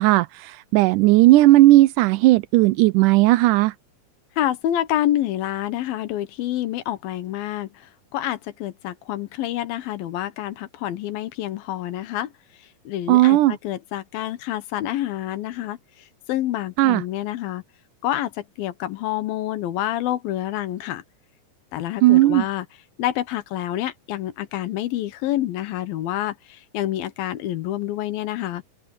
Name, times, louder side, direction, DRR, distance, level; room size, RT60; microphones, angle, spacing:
voice 1, 0.0-3.7 13.1-13.6 16.8-17.0 22.0-22.4, right 17 dB, 80° right, 1.8 m, -15 dB
voice 2, 4.4-7.7 8.1-12.3 12.9-15.8 16.3-17.6 18.0-21.0 21.7-22.7 23.0-28.6, left 13 dB, 80° left, 2.9 m, -27 dB
open air
omnidirectional pair, 4.2 m